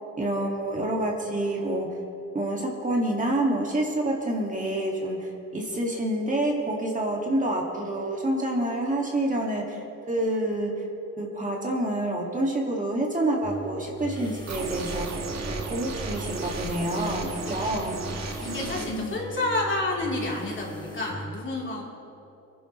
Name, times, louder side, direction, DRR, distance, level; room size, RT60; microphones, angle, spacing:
voice 1, 0.2-1.9 2.3-9.8 10.1-10.7 11.2-15.2 15.5-18.0 18.7-19.1, right 1 dB, 25° right, -1 dB, 1.9 m, -28 dB
sound 1, 13.4-21.1, equal, 15° left, 1.7 m, -40 dB
sound 2, 14.5-18.9, right 4 dB, 60° right, 1.6 m, -34 dB
voice 2, 18.3-21.8, left 2 dB, 40° left, -3 dB, 3.2 m, -30 dB
22.5 x 11.0 x 3.1 m, 2.8 s
cardioid pair, 90°, 30 cm